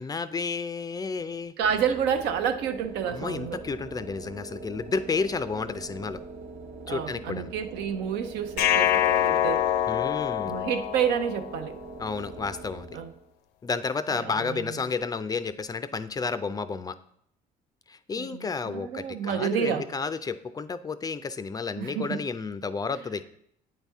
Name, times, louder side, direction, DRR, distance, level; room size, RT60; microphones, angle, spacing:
voice 1, 0.0-1.5 3.0-6.2 6.9-7.5 9.9-10.7 12.0-13.0 13.6-17.0 17.9-23.2, left 4 dB, 20° left, 13 dB, 0.3 m, -31 dB
sound 1, 1.6-13.3, right 3 dB, 60° right, 0.9 m, -43 dB
voice 2, 1.6-3.6 6.9-9.6 10.5-11.8 12.9-13.1 14.2-14.7 18.2-19.8 21.8-22.1, right 8 dB, 90° right, 8 dB, 0.7 m, -29 dB
sound 2, 8.6-11.7, left 11 dB, 85° left, 0.5 m, -25 dB
8.8 x 4.2 x 3.5 m, 0.71 s
cardioid pair, 110°, 17 cm